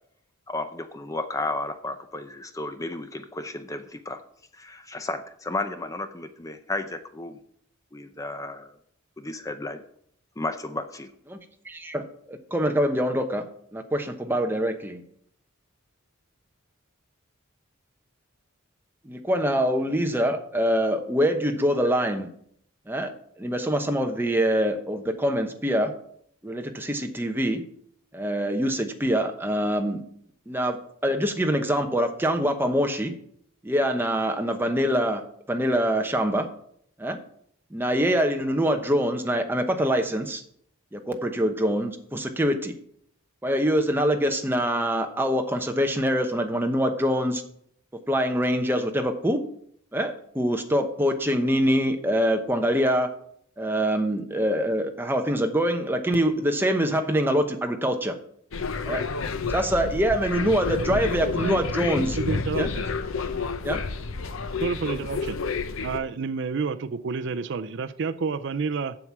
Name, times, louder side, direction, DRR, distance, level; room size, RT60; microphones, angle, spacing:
voice 1, 0.5-4.2 4.5-7.4 7.9-8.7 9.2-9.8 10.4-11.1, left 2 dB, 15° left, 0.5 m, -33 dB
voice 2, 11.7-13.4 13.7-15.0 19.0-22.3 22.9-23.1 23.4-25.9 26.4-27.6 28.1-30.0 30.5-30.8 31.0-33.1 33.6-35.2 35.5-36.5 37.0-37.2 37.7-40.4 40.9-42.7 43.4-47.4 48.1-49.4 49.9-53.1 53.6-58.2 58.9-59.0 59.5-62.2 62.6-62.7 63.6-63.8, equal, 10° right, 0.9 m, -24 dB
sound 1, 58.5-66.0, left 4 dB, 70° left, 0.7 m, -30 dB
voice 3, 62.2-62.9 64.6-65.4 65.8-69.0, right 5 dB, 55° right, 0.4 m, -29 dB
7.8 x 7.2 x 6.0 m
head